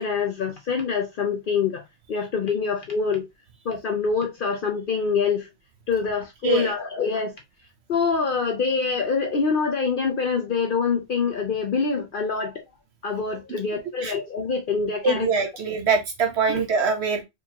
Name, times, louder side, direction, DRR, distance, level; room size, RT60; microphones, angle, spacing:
voice 1, 0.0-3.3 3.6-5.5 5.9-7.3 7.9-12.5 13.0-15.3 16.5-16.6, left 5 dB, 55° left, 0.8 m, -25 dB
voice 2, 15.0-17.2, right 4 dB, 75° right, 1.1 m, -23 dB
4.5 x 2.7 x 2.9 m
omnidirectional pair, 1.1 m